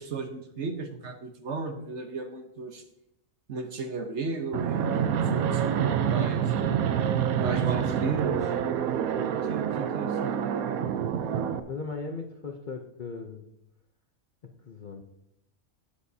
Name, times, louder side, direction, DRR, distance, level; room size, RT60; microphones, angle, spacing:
voice 1, 0.0-2.8 3.5-6.5 7.3-8.5 9.5-10.4, right 4 dB, 55° right, 6 dB, 1.2 m, -35 dB
Fixed-wing aircraft airplane, 4.5-11.6, right 8 dB, 85° right, 1.1 m, -27 dB
voice 2, 11.7-13.4 14.6-15.0, left 4 dB, 45° left, 3 dB, 0.7 m, -37 dB
12.5 x 8.5 x 2.7 m, 0.82 s
omnidirectional pair, 1.5 m